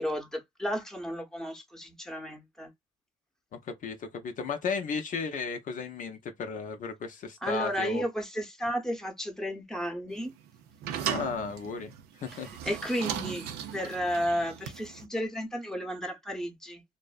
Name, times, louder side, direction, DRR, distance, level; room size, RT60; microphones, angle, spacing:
voice 1, 0.0-2.7 7.4-10.3 12.3-16.8, equal, 5° left, 0.8 m, -33 dB
voice 2, 3.6-8.0 11.0-12.5, left 5 dB, 55° left, 0.5 m, -34 dB
sound 1, 10.1-15.0, right 9 dB, 85° right, 0.4 m, -37 dB
2.6 x 2.0 x 2.3 m
cardioid pair, 75°, 16 cm